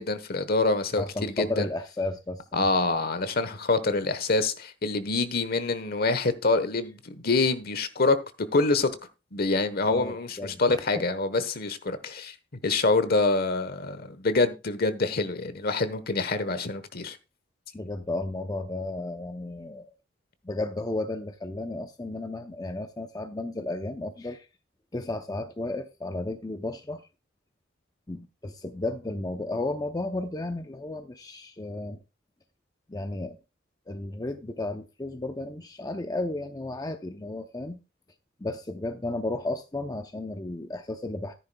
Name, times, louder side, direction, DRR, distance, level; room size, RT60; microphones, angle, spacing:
voice 1, 0.0-1.7 2.5-8.2 8.5-8.9 9.3-12.3 12.6-17.2, left 3 dB, 50° left, 1.1 m, -26 dB
voice 2, 1.0-2.7 9.8-11.0 17.7-19.9 20.4-24.5 24.9-27.0 28.1-32.0 32.9-33.4 33.9-37.8 38.4-41.3, left 2 dB, 20° left, 0.6 m, -33 dB
13.5 x 10.5 x 2.3 m
head